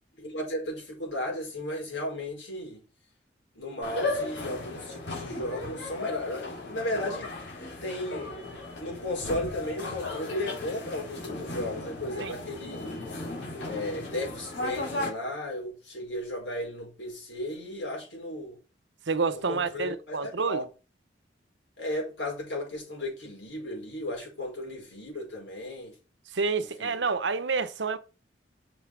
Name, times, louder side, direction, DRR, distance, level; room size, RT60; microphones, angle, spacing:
voice 1, 0.2-2.8 3.5-7.3 7.8-8.3 8.8-13.0 13.6-18.6 19.5-20.6 21.8-25.9 26.8-26.9, left 1 dB, 85° left, 5.1 m, -35 dB
sound 1, 3.8-15.1, left 2 dB, 70° left, 3.5 m, -36 dB
voice 2, 19.1-20.7 26.3-28.0, right 4 dB, 75° right, 0.9 m, -28 dB
6.8 x 5.6 x 4.7 m
head